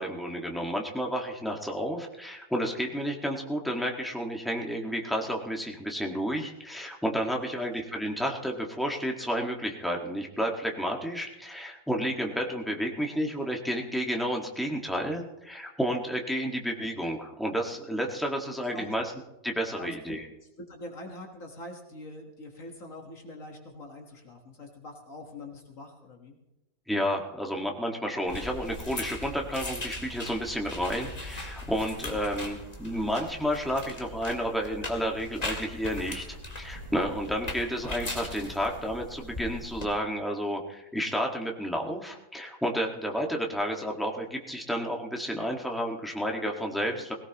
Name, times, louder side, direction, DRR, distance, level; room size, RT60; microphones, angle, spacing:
voice 1, 0.0-19.1 19.4-20.2 26.9-47.1, equal, ahead, 0 dB, 1.6 m, -31 dB
voice 2, 19.8-26.4 32.1-32.2 46.9-47.0, left 2 dB, 60° left, 2 dB, 1.9 m, -44 dB
sound 1, 28.3-39.8, left 1 dB, 25° left, 2.0 m, -39 dB
19.0 x 17.5 x 3.0 m, 0.97 s
omnidirectional pair, 1.6 m